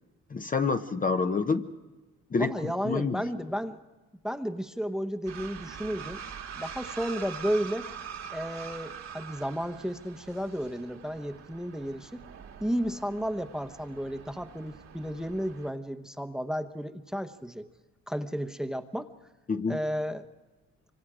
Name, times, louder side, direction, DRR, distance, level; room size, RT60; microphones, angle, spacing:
voice 1, 0.3-1.7 2.3-3.2 19.5-19.8, left 4 dB, 25° left, 7 dB, 0.8 m, -28 dB
voice 2, 2.4-3.8 4.2-6.2 6.6-7.9 8.3-12.2 12.6-17.7 18.1-19.1 19.7-20.2, equal, ahead, 8 dB, 0.9 m, -33 dB
sound 1, 5.3-15.7, right 7 dB, 60° right, 1.7 m, -44 dB
25.0 x 25.0 x 4.9 m, 1.2 s
cardioid pair, 90°, 30 cm